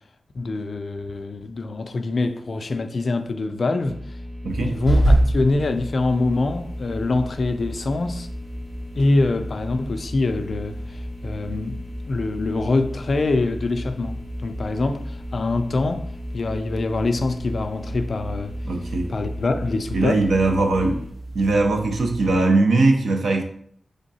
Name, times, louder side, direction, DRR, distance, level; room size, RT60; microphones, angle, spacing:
voice 1, 0.3-4.0 4.6-8.3 9.0-11.8 12.1-16.0 16.3-18.5 19.1-20.2, left 2 dB, 45° left, 0.4 m, -24 dB
sound 1, 3.8-21.1, left 1 dB, 70° right, 1.7 m, -35 dB
sound 2, 4.5-22.4, right 1 dB, 35° right, 0.9 m, -30 dB
voice 2, 18.6-19.1 19.9-21.0 21.3-23.4, right 2 dB, 90° right, 0.7 m, -20 dB
3.6 x 3.6 x 4.0 m
wide cardioid pair, 170°, 0 cm